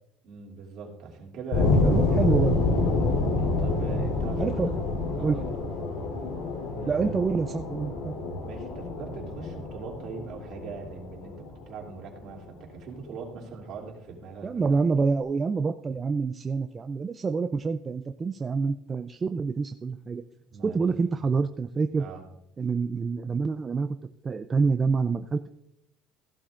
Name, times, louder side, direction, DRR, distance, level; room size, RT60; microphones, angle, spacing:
voice 1, 0.2-2.2 3.0-4.7 5.1-5.5 6.8-7.2 8.4-14.8 20.5-21.1 22.0-22.2, right 4 dB, 50° right, 0 dB, 2.8 m, -41 dB
sound 1, 1.5-12.3, left 2 dB, 85° left, 3.5 m, -27 dB
voice 2, 1.8-2.5 4.4-4.7 5.2-5.4 6.9-8.2 14.4-20.2 20.6-22.0 22.6-23.9 24.2-25.5, right 4 dB, 20° right, 7 dB, 0.4 m, -27 dB
15.5 x 11.5 x 2.5 m, 0.81 s
cardioid pair, 135°, 0 cm